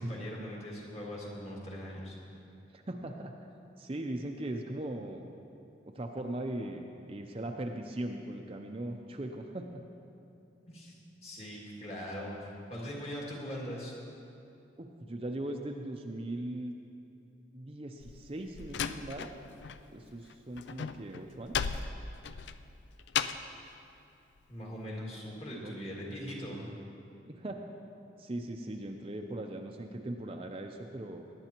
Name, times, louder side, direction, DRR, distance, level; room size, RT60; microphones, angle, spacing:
voice 1, 0.0-2.2 10.7-13.9 24.5-26.7, equal, 35° left, -4 dB, 2.2 m, -41 dB
voice 2, 2.7-3.3 3.8-5.3 5.9-9.8 14.8-16.7 17.5-19.3 19.9-21.6 25.6-25.7 27.3-27.6 28.2-31.3, right 1 dB, 30° right, 3 dB, 0.5 m, -39 dB
Slam, 18.0-19.8 20.1-23.6, left 7 dB, 75° left, 0.4 m, -36 dB
18.5 x 11.0 x 3.0 m, 2.6 s
head